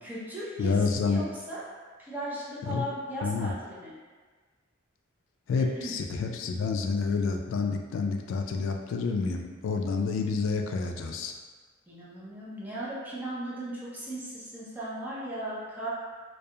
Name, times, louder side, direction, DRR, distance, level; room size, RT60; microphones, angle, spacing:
voice 1, 0.0-1.6 2.0-3.9 5.6-5.9 11.9-15.9, right 1 dB, 10° right, -8 dB, 0.5 m, -37 dB
voice 2, 0.6-1.2 2.6-2.8 3.2-3.5 5.5-11.3, left 4 dB, 75° left, 4 dB, 0.3 m, -28 dB
2.3 x 2.3 x 2.7 m, 1.4 s
head